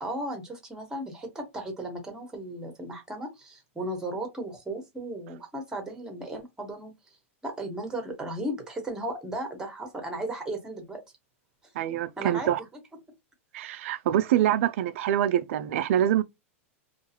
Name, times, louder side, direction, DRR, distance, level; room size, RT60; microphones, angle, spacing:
voice 1, 0.0-6.9 7.4-11.0 12.2-12.6, right 1 dB, 10° right, 1.1 m, -35 dB
voice 2, 11.8-12.6 13.5-16.2, right 11 dB, 65° right, 0.3 m, -25 dB
2.4 x 2.3 x 2.8 m
hypercardioid pair, 120°, 8 cm